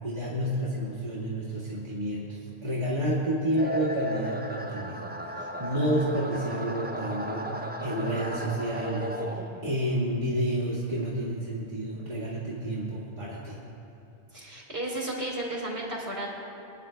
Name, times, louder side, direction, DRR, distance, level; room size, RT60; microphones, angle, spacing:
voice 1, 0.0-5.3 5.6-9.2 9.6-13.6, right 1 dB, 40° right, -9 dB, 2.0 m, -30 dB
sound 1, 3.6-9.8, equal, 15° right, 0.4 m, -35 dB
voice 2, 14.3-16.3, right 1 dB, 65° right, -3 dB, 3.1 m, -33 dB
27.5 x 10.0 x 2.3 m, 2.8 s
omnidirectional pair, 1.1 m